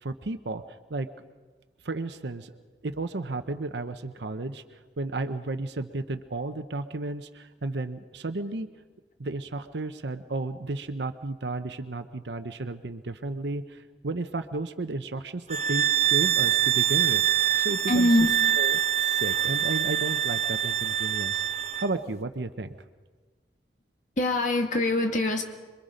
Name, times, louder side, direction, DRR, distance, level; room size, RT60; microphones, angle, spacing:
voice 1, 0.0-0.6 0.9-1.1 1.8-2.5 2.8-8.7 9.2-18.1 18.6-21.4 21.8-22.8, right 2 dB, 75° right, 9 dB, 0.8 m, -33 dB
sound 1, 15.5-21.9, right 10 dB, 35° right, 0.9 m, -25 dB
voice 2, 17.9-18.3 24.2-25.4, left 1 dB, 45° left, 4 dB, 1.9 m, -23 dB
26.5 x 22.5 x 5.2 m, 1.4 s
head